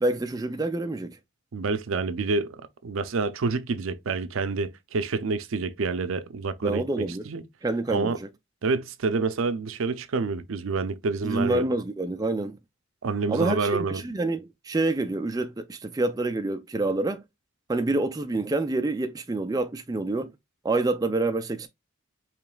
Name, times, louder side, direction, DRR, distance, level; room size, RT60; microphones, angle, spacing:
voice 1, 0.0-1.2 6.6-7.3 7.6-8.3 11.2-12.6 13.3-17.2 17.7-20.3 20.6-21.7, right 2 dB, 15° right, 0.3 m, -27 dB
voice 2, 1.5-2.6 2.8-7.4 7.9-8.2 8.6-11.7 13.0-14.0, right 4 dB, 70° right, 0.5 m, -28 dB
4.8 x 3.1 x 2.3 m
head